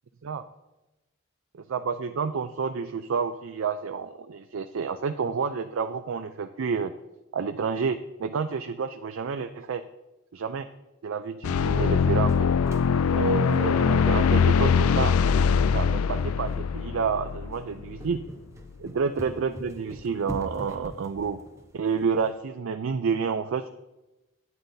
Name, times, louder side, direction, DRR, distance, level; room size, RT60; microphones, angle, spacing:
voice 1, 1.5-6.9 7.3-9.8 10.3-10.7 11.0-12.5 13.1-15.2 15.6-18.2 18.8-21.4 21.7-23.7, right 5 dB, 65° right, 9 dB, 0.4 m, -29 dB
sound 1, 11.4-18.1, left 6 dB, 85° left, 0.4 m, -22 dB
sound 2, 11.9-22.3, right 1 dB, 15° right, 0.7 m, -45 dB
12.5 x 9.8 x 2.7 m, 1.0 s
head